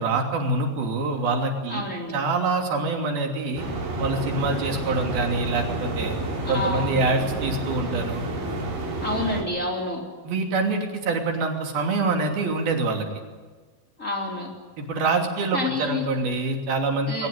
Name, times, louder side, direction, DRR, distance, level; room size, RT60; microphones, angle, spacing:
voice 1, 0.0-1.8 2.1-3.6 4.0-6.2 6.5-8.2 10.2-13.0 14.8-17.3, right 3 dB, 85° right, 3 dB, 4.8 m, -25 dB
voice 2, 1.7-2.2 6.4-6.9 9.0-10.0 14.0-14.5 15.5-16.0 17.1-17.3, left 2 dB, 20° left, 0 dB, 3.8 m, -28 dB
sound 1, 3.6-9.4, right 2 dB, 65° right, 6.1 m, -30 dB
22.0 x 20.0 x 9.8 m, 1.4 s
omnidirectional pair, 4.2 m